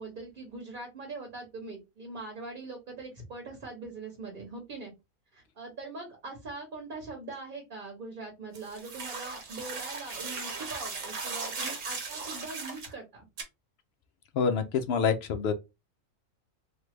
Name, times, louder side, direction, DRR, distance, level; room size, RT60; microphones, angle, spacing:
voice 1, 0.0-4.9 5.3-13.2, right 3 dB, 45° right, 1.0 m, -42 dB
sound 1, 8.5-12.9 13.4-13.5, right 4 dB, 70° right, 1.3 m, -37 dB
voice 2, 14.3-15.5, left 6 dB, 65° left, 0.7 m, -26 dB
3.2 x 2.2 x 3.1 m
omnidirectional pair, 1.4 m